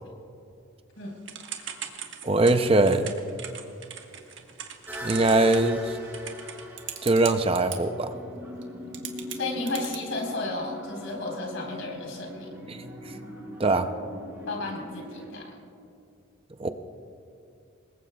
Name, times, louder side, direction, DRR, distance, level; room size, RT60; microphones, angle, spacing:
Typing / Telephone, 1.3-7.8 8.6-8.7 8.9-10.0, right 9 dB, 60° right, 1.4 m, -38 dB
voice 1, 2.2-3.1 5.0-6.0 7.0-8.1 12.7-12.8 13.6-13.9 16.6-16.7, right 2 dB, 25° right, 8 dB, 0.5 m, -22 dB
sound 1, 4.9-15.3, equal, 10° right, 3.8 m, -40 dB
voice 2, 9.3-12.5 14.5-15.6, left 2 dB, 70° left, -1 dB, 4.3 m, -33 dB
26.0 x 20.5 x 2.3 m, 2.6 s
head